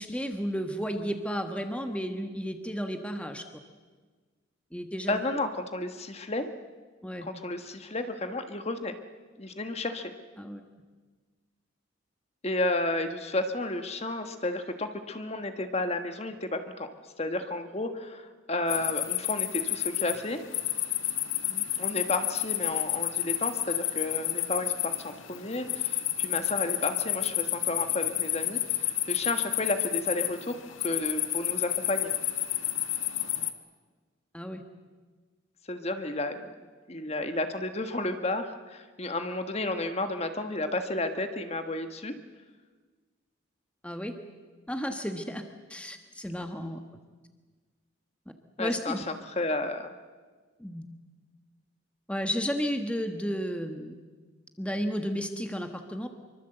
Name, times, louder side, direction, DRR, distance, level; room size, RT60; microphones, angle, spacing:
voice 1, 0.0-3.4 4.7-5.2 7.0-7.3 10.4-10.6 21.5-21.6 34.3-34.6 43.8-44.1 44.7-45.4 45.7-46.8 48.6-49.0 50.6-50.8 52.1-53.9 54.6-56.1, equal, 5° left, 5 dB, 1.3 m, -33 dB
voice 2, 5.1-6.5 7.2-8.9 9.4-10.1 12.4-16.9 17.2-20.4 21.8-32.1 35.7-36.5 36.9-42.1 48.6-49.0 49.2-49.9, left 2 dB, 30° left, 7 dB, 1.5 m, -32 dB
sound 1, 18.7-33.5, left 13 dB, 90° left, 1.7 m, -30 dB
25.5 x 24.0 x 7.9 m, 1.4 s
head